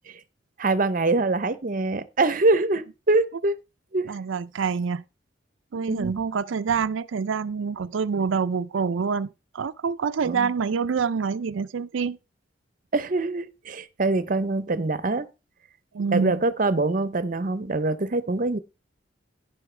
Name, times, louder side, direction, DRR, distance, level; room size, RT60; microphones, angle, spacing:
voice 1, 0.6-3.6 3.9-4.1 5.9-6.1 10.2-10.5 12.9-15.3 16.1-18.6, right 2 dB, 45° right, 0.7 m, -24 dB
voice 2, 4.1-5.0 5.7-9.3 9.5-12.2 15.9-16.4, right 5 dB, 90° right, 0.4 m, -26 dB
11.0 x 10.5 x 3.3 m
head